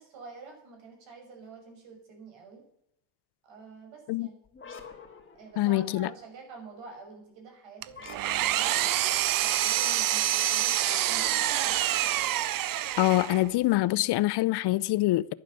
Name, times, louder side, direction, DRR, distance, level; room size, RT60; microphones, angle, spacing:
voice 1, 0.0-2.6 3.4-4.3 5.3-8.9 9.4-12.0, right 4 dB, 65° right, 6.1 m, -47 dB
sound 1, 4.4-6.0 7.9-8.9 10.8-12.6, left 6 dB, 25° left, 2.6 m, -48 dB
voice 2, 5.6-6.1 13.0-15.3, left 17 dB, 55° left, 0.6 m, -25 dB
Engine, 7.8-13.5, right 13 dB, 45° right, 0.7 m, -27 dB
11.5 x 11.0 x 6.7 m
cardioid pair, 105°, 48 cm